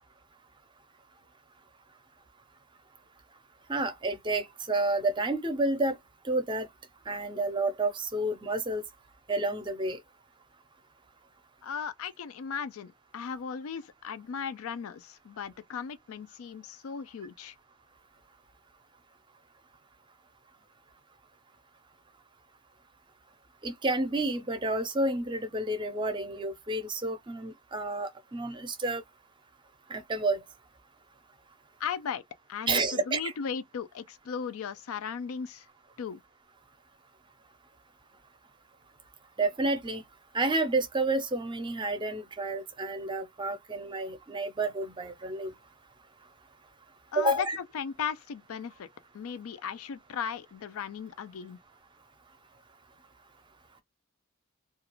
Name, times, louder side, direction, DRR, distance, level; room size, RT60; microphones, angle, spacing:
voice 1, 3.7-6.0 6.2-6.7 7.1-8.8 9.3-10.0 23.6-29.0 29.9-30.4 32.7-33.3 39.4-40.0 40.3-45.5 47.1-47.6, right 2 dB, 20° right, 0.5 m, -30 dB
voice 2, 11.6-17.6 31.8-32.2 32.5-35.7 36.0-36.2 47.1-47.5 47.7-48.9 49.1-51.6, left 6 dB, 85° left, 0.4 m, -37 dB
2.4 x 2.4 x 2.9 m
head